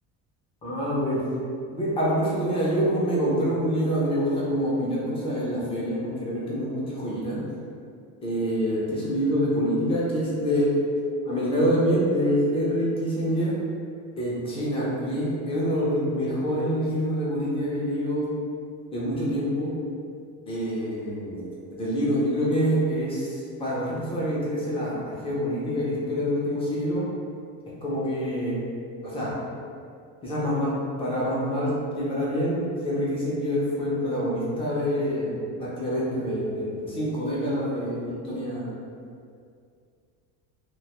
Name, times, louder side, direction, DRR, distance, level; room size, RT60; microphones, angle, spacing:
voice 1, 0.6-1.2 1.7-7.4 8.2-10.7 11.2-13.5 14.2-18.3 18.9-19.7 20.5-27.1 27.8-28.6 29.0-29.3 30.2-30.7 31.0-35.3 35.6-38.8, equal, 15° left, -7 dB, 0.3 m, -26 dB
2.2 x 2.2 x 2.8 m, 2.3 s
cardioid pair, 140°, 40 cm